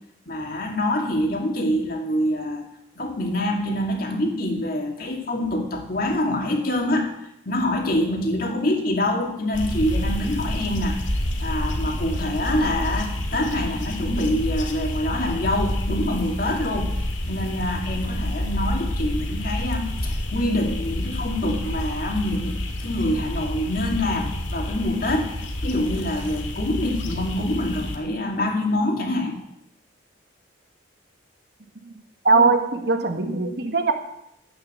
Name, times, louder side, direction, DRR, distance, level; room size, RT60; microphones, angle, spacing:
voice 1, 0.3-2.7 3.0-7.1 7.5-11.0 11.4-16.9 17.3-25.3 25.6-29.4, left 1 dB, 50° left, 2 dB, 2.3 m, -25 dB
sound 1, 9.5-28.0, left 1 dB, 85° left, 1.9 m, -28 dB
voice 2, 32.2-33.9, right 3 dB, 55° right, 6 dB, 1.4 m, -20 dB
10.5 x 8.9 x 7.4 m, 0.83 s
head